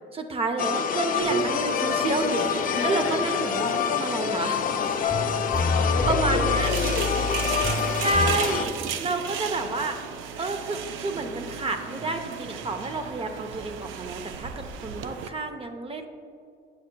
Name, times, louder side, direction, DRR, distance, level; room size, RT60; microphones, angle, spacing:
voice 1, 0.1-4.6 5.8-6.7 8.0-8.7 9.0-10.0 10.4-16.1, right 2 dB, 30° right, 6 dB, 0.5 m, -29 dB
sound 1, 0.6-8.6, left 7 dB, 45° left, 0.4 m, -26 dB
sound 2, 1.2-15.3, right 8 dB, 85° right, 0.4 m, -36 dB
voice 2, 2.7-3.5 5.7-8.0, left 4 dB, 80° left, 0 dB, 1.0 m, -32 dB
sound 3, 5.1-8.3, left 2 dB, 10° left, 0.7 m, -28 dB
7.6 x 6.8 x 2.2 m, 2.4 s
cardioid pair, 90°, 20 cm